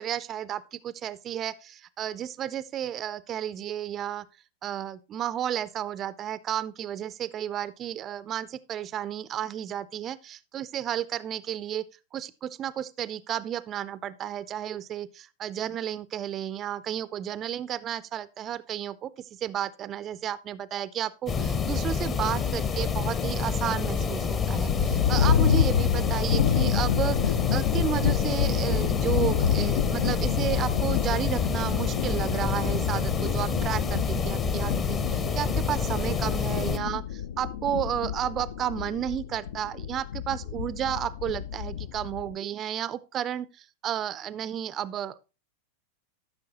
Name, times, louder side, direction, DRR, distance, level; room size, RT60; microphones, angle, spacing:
voice 1, 0.0-4.3 4.6-11.8 12.1-45.2, right 10 dB, 30° right, 0.4 m, -32 dB
sound 1, 21.3-36.8, left 5 dB, 25° left, 0.9 m, -28 dB
sound 2, 24.3-42.3, left 9 dB, 60° left, 0.5 m, -28 dB
13.0 x 6.2 x 2.9 m
figure-of-eight pair, 90°, 0 cm